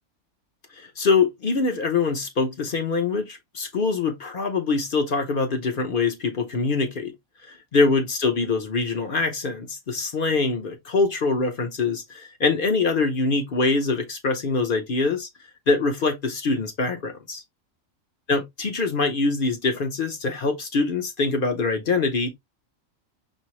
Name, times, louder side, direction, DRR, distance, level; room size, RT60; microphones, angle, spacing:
voice 1, 0.8-7.1 7.5-15.3 15.7-17.4 18.3-22.3, left 4 dB, 45° left, 0.9 m, -24 dB
5.4 x 2.7 x 2.9 m
omnidirectional pair, 1.4 m